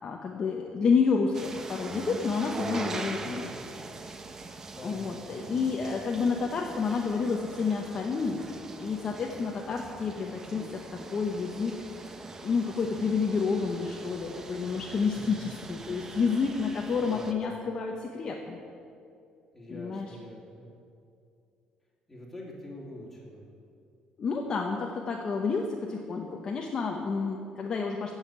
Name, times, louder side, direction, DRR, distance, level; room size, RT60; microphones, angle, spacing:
voice 1, 0.0-3.5 4.8-11.8 12.1-12.2 12.4-18.6 19.7-20.1 24.2-28.1, left 5 dB, 30° left, 1 dB, 0.9 m, -29 dB
sound 1, 1.3-17.3, right 3 dB, 20° right, 0.7 m, -42 dB
voice 2, 3.2-3.6 4.7-5.1 5.4-5.7 15.1-15.5 17.0-17.4 19.5-20.7 22.1-23.4, left 1 dB, 5° left, -4 dB, 2.8 m, -45 dB
15.5 x 6.6 x 8.9 m, 2.5 s
cardioid pair, 180°, 2 cm